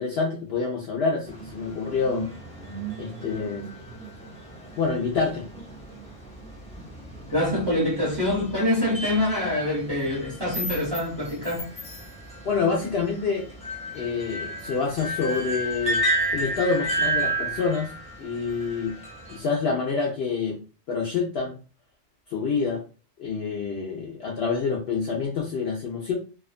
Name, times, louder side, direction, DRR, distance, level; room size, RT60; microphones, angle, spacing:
voice 1, 0.0-2.3 3.0-3.7 4.7-5.4 12.4-13.5 13.9-16.0 16.3-17.9 18.2-19.0 19.3-20.6 20.9-21.6 22.3-22.8 23.2-26.1, left 4 dB, 60° left, 0.7 m, -27 dB
sound 1, 1.3-19.4, right 1 dB, 5° left, 0.5 m, -33 dB
voice 2, 7.3-11.7, left 1 dB, 20° right, 1.0 m, -25 dB
2.4 x 2.3 x 2.4 m
omnidirectional pair, 1.4 m